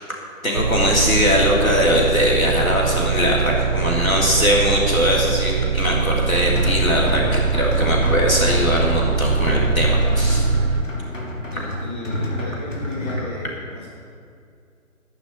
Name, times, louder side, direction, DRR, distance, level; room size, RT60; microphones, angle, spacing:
voice 1, 0.4-10.5, left 1 dB, 80° left, -3 dB, 3.6 m, -20 dB
sound 1, 0.5-10.8, right 5 dB, 50° right, 0.4 m, -22 dB
sound 2, 6.1-13.2, left 1 dB, 65° left, 2.3 m, -28 dB
voice 2, 11.5-13.9, left 1 dB, 10° left, -4 dB, 1.0 m, -34 dB
11.5 x 5.7 x 9.1 m, 2.3 s
figure-of-eight pair, 145°, 41 cm